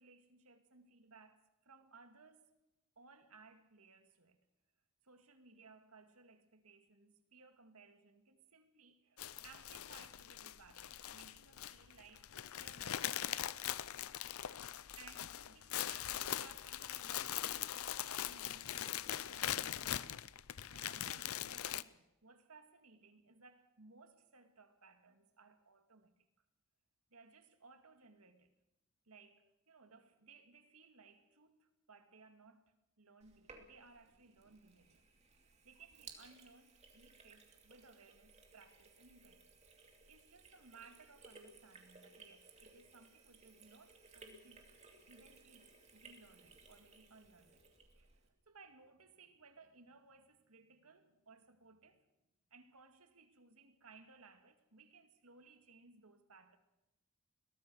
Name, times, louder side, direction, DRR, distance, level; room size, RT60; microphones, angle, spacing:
voice 1, 0.0-2.5 3.0-4.4 5.0-13.5 15.0-20.1 20.5-26.3 27.1-28.5 29.1-35.0 35.3-39.5 40.1-44.6 45.1-45.7 45.9-47.6 47.9-52.0 52.5-56.6, right 4 dB, 85° right, 2.2 m, -62 dB
sound 1, 9.2-21.8, left 11 dB, 80° left, 0.6 m, -41 dB
Sink (filling or washing), 33.2-48.3, right 4 dB, 30° right, 2.7 m, -61 dB
22.0 x 18.5 x 6.4 m
head